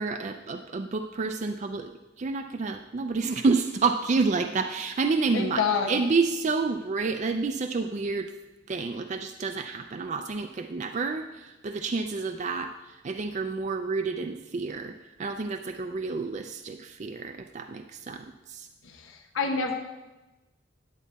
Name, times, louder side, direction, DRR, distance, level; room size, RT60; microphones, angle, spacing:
voice 1, 0.0-1.9 2.2-8.3 8.7-18.7, right 4 dB, 35° right, 6 dB, 0.4 m, -29 dB
voice 2, 5.3-6.0 18.8-19.7, left 5 dB, 85° left, 2 dB, 0.9 m, -28 dB
10.5 x 8.3 x 4.1 m, 1.1 s
head